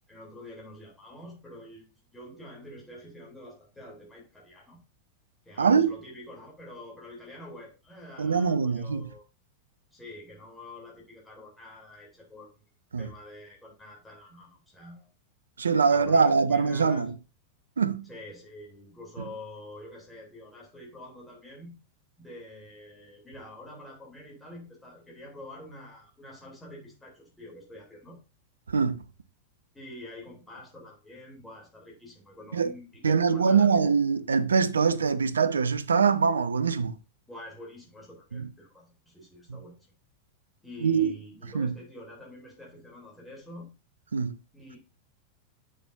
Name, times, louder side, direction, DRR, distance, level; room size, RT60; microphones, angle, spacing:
voice 1, 0.1-1.9 2.1-4.8 5.4-9.2 9.9-12.5 13.0-15.1 15.7-17.1 18.0-21.8 22.2-28.2 29.7-33.8 37.3-39.9 40.6-43.7 44.5-44.8, left 1 dB, 10° left, 3.3 m, -47 dB
voice 2, 5.6-6.0 8.2-9.1 12.9-13.1 15.6-17.1 17.8-18.0 28.7-29.0 32.5-32.7 33.0-36.9 38.3-38.5 39.5-39.6 40.8-41.1 41.5-41.7 44.1-44.4, right 5 dB, 70° right, 0.6 m, -23 dB
8.6 x 6.5 x 2.7 m
figure-of-eight pair, 90°, 0 cm